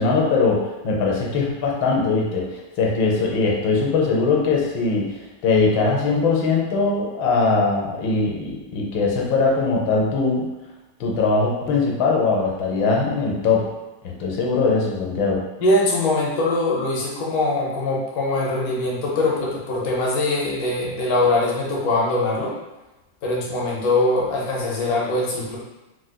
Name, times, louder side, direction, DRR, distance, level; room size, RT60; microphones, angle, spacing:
voice 1, 0.0-10.5 11.0-13.7 14.0-15.4, left 4 dB, 90° left, -2 dB, 1.4 m, -21 dB
voice 2, 15.6-22.5 23.2-25.6, left 2 dB, 60° left, -4 dB, 1.2 m, -22 dB
4.8 x 2.0 x 2.2 m, 1.0 s
omnidirectional pair, 2.0 m